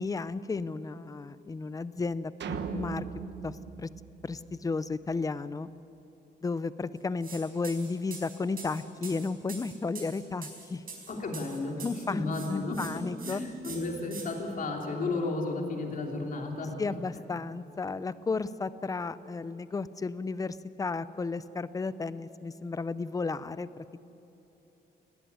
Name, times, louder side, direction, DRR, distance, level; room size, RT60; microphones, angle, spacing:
voice 1, 0.0-3.0 3.4-3.9 4.2-5.7 6.4-10.8 11.8-12.2 12.5-13.4 16.8-24.0, left 4 dB, 20° left, 16 dB, 0.5 m, -33 dB
sound 1, 2.4-4.9, right 7 dB, 90° right, 1.3 m, -38 dB
sound 2, 7.2-7.4 7.6-12.1 12.3-12.9 13.2-13.3 13.6-14.2, right 5 dB, 55° right, 4.7 m, -43 dB
voice 2, 11.1-12.8 13.2-16.9, left 3 dB, 50° left, 1 dB, 3.1 m, -33 dB
19.0 x 17.5 x 9.4 m, 2.9 s
wide cardioid pair, 170°, 18 cm